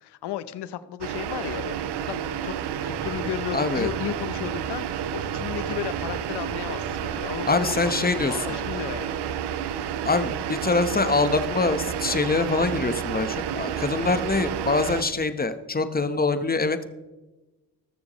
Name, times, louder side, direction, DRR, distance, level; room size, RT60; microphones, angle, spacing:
voice 1, 0.0-9.2, left 11 dB, 80° left, 15 dB, 0.8 m, -34 dB
sound 1, 1.0-15.0, right 9 dB, 80° right, 0.7 m, -30 dB
sound 2, 2.9-9.3, left 2 dB, 55° left, 4.4 m, -46 dB
voice 2, 3.5-3.9 7.4-8.5 10.0-16.9, left 3 dB, 20° left, 10 dB, 1.1 m, -24 dB
20.0 x 7.0 x 3.1 m, 1.1 s
cardioid pair, 65°, 40 cm